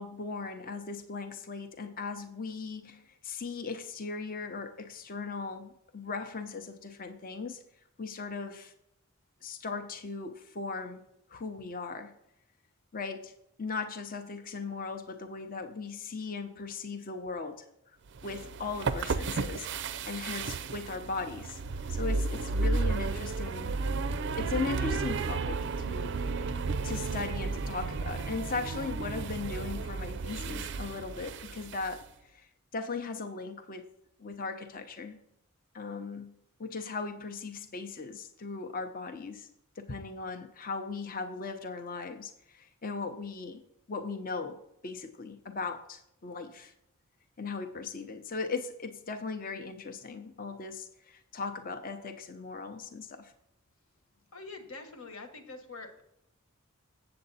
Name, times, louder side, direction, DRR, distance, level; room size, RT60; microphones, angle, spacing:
voice 1, 0.0-7.6 8.0-8.7 9.4-11.0 11.3-12.1 12.9-13.3 13.6-17.6 18.2-21.6 21.9-23.7 24.2-26.2 26.8-33.9 34.2-35.2 35.7-39.5 39.8-43.6 43.9-44.6 44.8-46.7 47.4-53.3, left 4 dB, 40° left, 6 dB, 0.7 m, -38 dB
sound 1, 18.1-32.0, right 4 dB, 55° right, 0.4 m, -33 dB
voice 2, 54.3-56.0, left 3 dB, 70° left, 6 dB, 1.4 m, -45 dB
7.8 x 7.8 x 4.1 m, 0.77 s
head